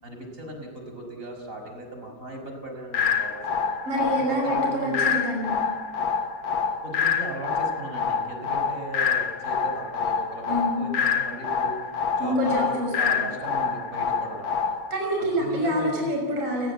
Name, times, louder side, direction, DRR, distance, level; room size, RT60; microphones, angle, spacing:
voice 1, 0.0-3.6 4.1-5.0 6.8-11.8 12.1-14.5 15.2-16.1, right 1 dB, 20° right, 3 dB, 6.0 m, -37 dB
sound 1, 2.9-14.9, left 6 dB, 85° left, 1.0 m, -27 dB
voice 2, 3.9-5.6 10.5-11.0 12.2-13.2 14.9-16.7, equal, 40° right, 0 dB, 7.0 m, -26 dB
29.5 x 21.0 x 8.6 m, 1.5 s
omnidirectional pair, 4.1 m